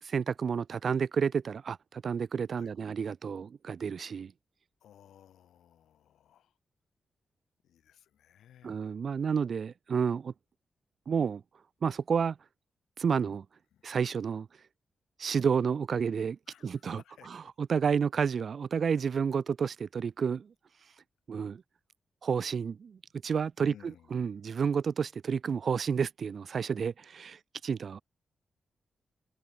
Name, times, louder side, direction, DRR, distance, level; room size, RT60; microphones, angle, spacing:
voice 1, 0.0-4.3 8.6-10.3 11.1-11.4 11.8-12.4 13.0-13.4 13.8-14.5 15.2-16.4 16.6-17.0 17.6-20.5 21.3-21.6 22.2-23.7 24.1-28.0, right 6 dB, 65° right, 0.4 m, -30 dB
voice 2, 4.8-6.6 7.6-9.0 13.1-13.4 13.7-13.9 16.5-17.5 18.9-19.1 23.6-24.4, left 10 dB, 85° left, 5.7 m, -58 dB
supercardioid pair, 45°, 0 cm